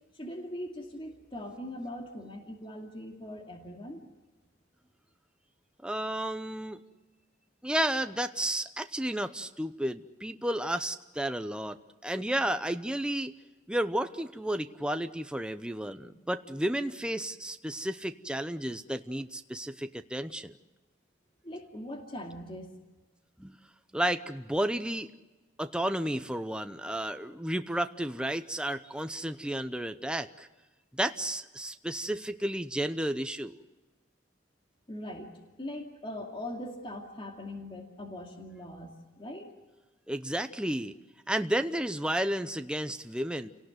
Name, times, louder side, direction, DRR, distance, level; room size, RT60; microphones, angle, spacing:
voice 1, 0.1-4.0 21.4-22.7 34.9-35.3 35.6-39.5, left 1 dB, 30° left, 2 dB, 2.5 m, -41 dB
voice 2, 5.8-6.8 7.6-11.8 12.0-13.3 13.7-20.5 23.4-23.6 23.9-25.1 25.6-30.5 30.9-33.6 40.1-40.9 41.3-43.5, right 1 dB, 5° right, 8 dB, 0.7 m, -32 dB
29.0 x 18.0 x 8.0 m, 1.2 s
head